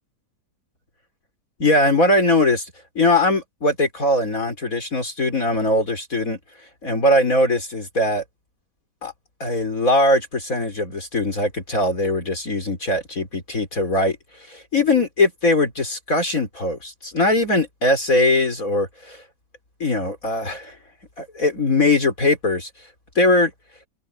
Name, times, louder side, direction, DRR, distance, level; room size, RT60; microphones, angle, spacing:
voice 1, 1.6-2.7 2.9-6.4 6.8-8.2 9.0-9.1 9.4-14.2 14.5-19.2 19.8-20.8 21.2-22.7 23.1-23.5, left 2 dB, 50° left, 4.9 m, -20 dB
omnidirectional pair, 1.9 m